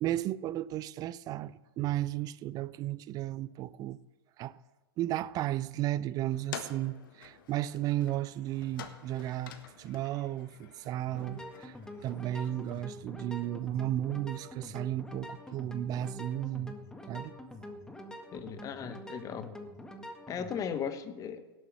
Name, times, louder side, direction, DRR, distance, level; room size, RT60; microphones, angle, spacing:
voice 1, 0.0-4.0 4.4-4.6 5.0-11.8 12.0-16.8 17.1-17.3, right 13 dB, 30° right, 0.5 m, -34 dB
sound 1, 6.3-13.0, left 8 dB, 60° left, 1.6 m, -49 dB
sound 2, 11.1-20.7, left 1 dB, 5° left, 1.6 m, -46 dB
voice 2, 18.3-19.5 20.3-21.4, left 7 dB, 25° left, 1.3 m, -37 dB
17.5 x 8.0 x 7.0 m
figure-of-eight pair, 100°, 13 cm